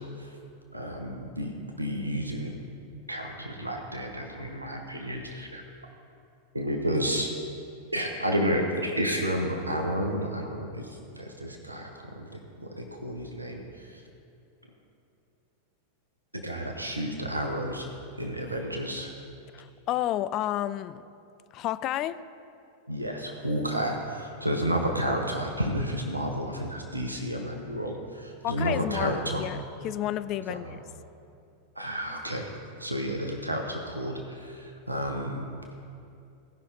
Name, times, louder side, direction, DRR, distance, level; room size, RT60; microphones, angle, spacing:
voice 1, 0.7-2.5 3.1-5.6 6.5-7.3 7.9-10.9 11.2-13.6 16.4-17.9 18.2-19.1 22.9-29.5 30.5-30.6 31.8-32.5 32.8-35.4, equal, 85° right, 2 dB, 0.9 m, -31 dB
voice 2, 19.5-21.0 21.5-22.2 28.4-29.6 29.8-30.8, left 13 dB, 35° left, 14 dB, 0.3 m, -31 dB
16.0 x 5.8 x 4.0 m, 2.5 s
figure-of-eight pair, 90°, 0 cm